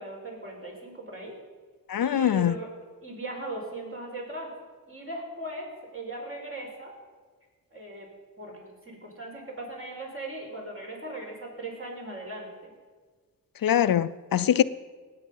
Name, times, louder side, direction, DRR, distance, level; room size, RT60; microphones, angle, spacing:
voice 1, 0.0-1.3 2.0-2.7 3.0-4.5 4.9-6.9 7.7-8.1 8.4-12.7, right 2 dB, 35° right, 5.2 m, -38 dB
voice 2, 1.9-2.5 13.6-14.6, left 10 dB, 70° left, 0.5 m, -23 dB
19.0 x 8.4 x 5.4 m
wide cardioid pair, 65°, 35 cm